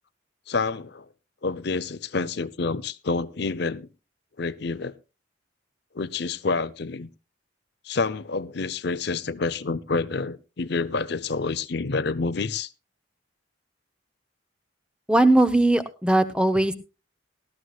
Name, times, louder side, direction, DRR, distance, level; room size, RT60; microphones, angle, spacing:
voice 1, 0.5-1.1 1.4-3.9 4.4-4.9 5.9-7.1 7.8-12.7, left 4 dB, 60° left, 0.7 m, -28 dB
voice 2, 15.1-16.7, right 1 dB, 5° right, 0.9 m, -19 dB
19.0 x 13.0 x 2.4 m
head